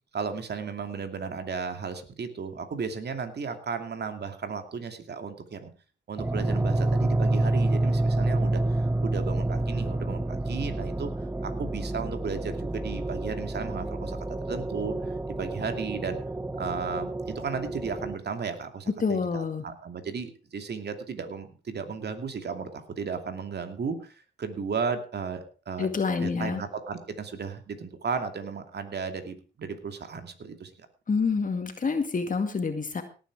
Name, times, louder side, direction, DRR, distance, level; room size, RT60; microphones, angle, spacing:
voice 1, 0.1-5.7 6.1-11.1 11.4-14.2 14.5-16.2 16.6-25.9 26.2-30.7, right 5 dB, 60° right, 7 dB, 2.6 m, -34 dB
sound 1, 6.2-18.2, right 2 dB, 10° right, 0.6 m, -28 dB
voice 2, 19.0-19.6 25.8-26.6 31.1-33.0, left 4 dB, 45° left, 6 dB, 2.0 m, -27 dB
18.0 x 9.3 x 4.8 m, 0.35 s
cardioid pair, 70°, 19 cm